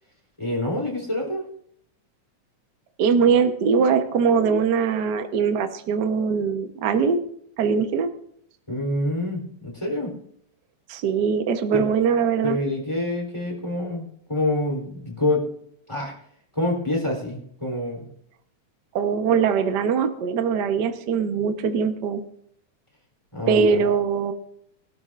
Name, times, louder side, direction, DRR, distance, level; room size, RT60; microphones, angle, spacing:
voice 1, 0.4-1.4 8.7-10.1 11.7-11.9 12.4-15.5 15.9-16.1 16.5-18.1 23.3-23.8, left 1 dB, 10° left, -1 dB, 3.3 m, -26 dB
voice 2, 3.0-7.2 7.6-8.1 10.9-12.6 18.9-22.2 23.5-24.3, right 6 dB, 80° right, 7 dB, 0.9 m, -21 dB
23.5 x 12.5 x 2.5 m, 0.68 s
omnidirectional pair, 3.5 m